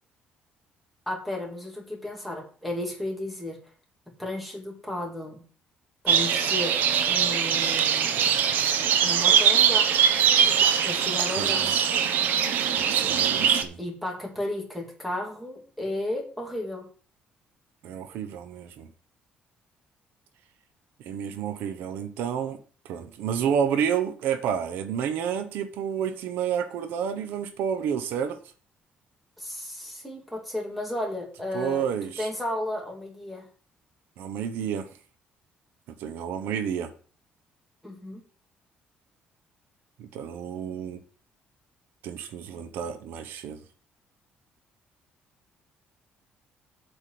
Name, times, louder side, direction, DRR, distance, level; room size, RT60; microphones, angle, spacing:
voice 1, 1.1-3.6 4.2-5.4 6.0-6.8 7.1-8.3 9.0-9.9 10.8-11.9 13.8-16.9 29.4-31.8 32.2-33.4 37.8-38.2, left 1 dB, ahead, 0 dB, 2.7 m, -33 dB
sound 1, 6.1-13.6, right 8 dB, 60° right, 1.0 m, -22 dB
voice 2, 11.4-11.8 12.8-13.8 17.8-18.9 21.0-22.6 22.8-28.4 31.5-32.3 34.2-34.9 36.0-36.9 40.0-41.0 42.0-43.6, right 8 dB, 85° right, 9 dB, 1.1 m, -30 dB
8.2 x 5.1 x 7.6 m, 0.41 s
cardioid pair, 155°, 3 cm